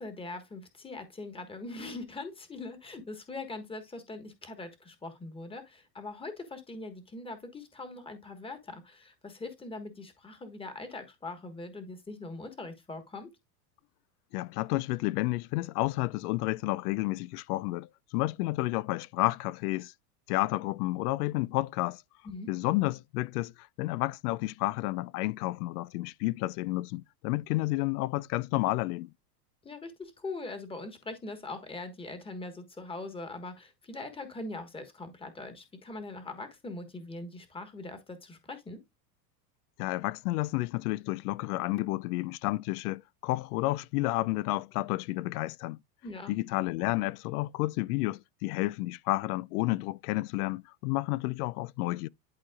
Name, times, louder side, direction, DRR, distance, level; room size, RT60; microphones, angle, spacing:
voice 1, 0.0-13.3 22.2-22.5 29.6-38.8 46.0-46.4, left 2 dB, 10° left, 1.4 m, -42 dB
voice 2, 14.3-19.9 20.3-22.0 22.5-29.1 39.8-45.8 46.3-52.1, left 20 dB, 65° left, 0.5 m, -31 dB
11.5 x 4.0 x 2.4 m
supercardioid pair, 110°, 50 cm